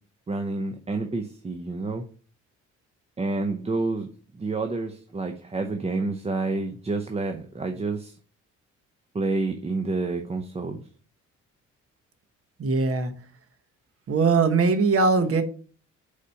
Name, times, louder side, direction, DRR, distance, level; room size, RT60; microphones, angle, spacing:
voice 1, 0.3-2.0 3.2-4.1 4.4-8.1 9.1-10.8, right 3 dB, 20° right, 0.6 m, -29 dB
voice 2, 12.6-13.1 14.1-15.4, right 4 dB, 50° right, 1.0 m, -21 dB
5.0 x 4.1 x 5.6 m
cardioid pair, 90°, 30 cm